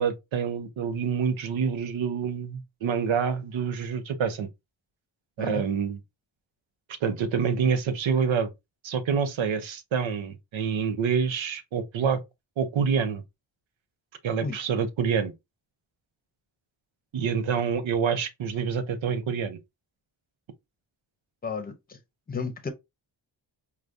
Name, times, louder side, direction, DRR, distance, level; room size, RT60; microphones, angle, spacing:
voice 1, 0.0-4.5 5.4-6.0 7.0-8.5 8.8-12.2 12.6-13.2 14.2-15.3 17.1-19.6, right 6 dB, 85° right, 0.8 m, -27 dB
voice 2, 21.4-22.0 22.3-22.7, left 4 dB, 20° left, 0.7 m, -33 dB
4.9 x 2.3 x 2.6 m
wide cardioid pair, 110°, 46 cm